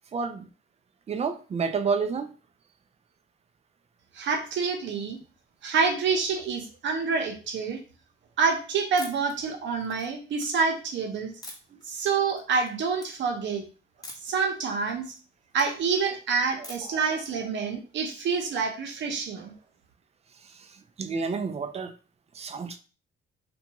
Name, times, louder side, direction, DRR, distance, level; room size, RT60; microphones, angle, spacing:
voice 1, 0.1-0.5 1.1-2.3 11.7-11.8 16.9-17.0 20.5-20.7 21.0-21.9 22.3-22.8, right 5 dB, 30° right, 0.4 m, -30 dB
voice 2, 4.1-5.2 5.6-7.8 8.4-11.3 11.8-13.7 14.2-15.1 15.5-19.5, right 5 dB, 65° right, 0.7 m, -27 dB
sound 1, 9.0-9.3 9.8-10.5 11.4-11.8 12.3-12.7 12.9-13.1 14.0-14.4 14.8-15.7 16.6-17.0, left 1 dB, 20° left, 0.7 m, -44 dB
2.5 x 2.2 x 2.9 m
cardioid pair, 90°, 20 cm